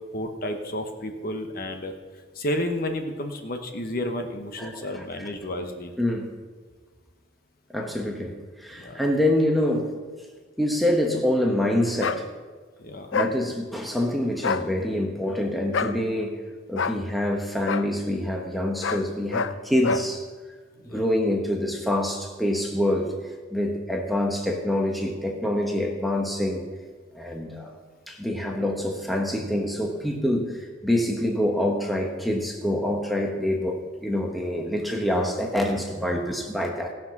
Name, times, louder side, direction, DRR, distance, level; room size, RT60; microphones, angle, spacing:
voice 1, 0.1-1.9 2.3-5.9 8.8-9.0 12.8-13.1 20.8-21.0, left 1 dB, 45° left, 4 dB, 1.0 m, -31 dB
voice 2, 4.6-5.3 6.0-6.3 7.7-10.0 10.6-12.3 13.1-16.4 16.7-20.3 20.8-23.1 23.5-26.7 27.1-27.7 28.1-36.9, left 1 dB, ahead, 1 dB, 1.0 m, -26 dB
sound 1, 12.0-12.2 13.1-13.3 14.4-14.7 15.7-16.0 16.7-17.0 17.6-17.9 18.8-19.0 19.3-19.5 19.8-20.1, left 5 dB, 70° left, 0.5 m, -26 dB
17.5 x 6.0 x 5.9 m, 1.5 s
head